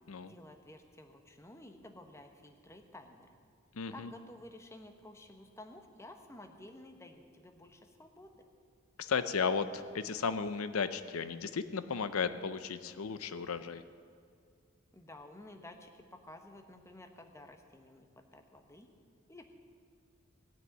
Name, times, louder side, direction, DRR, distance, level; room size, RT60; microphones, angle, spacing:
voice 1, 0.2-3.3 3.9-8.4 14.9-18.1 18.3-18.9 19.3-19.5, left 1 dB, 15° left, 5 dB, 1.0 m, -53 dB
voice 2, 3.7-4.1 9.0-13.8, left 5 dB, 90° left, 12 dB, 0.6 m, -34 dB
18.0 x 6.3 x 9.2 m, 2.2 s
head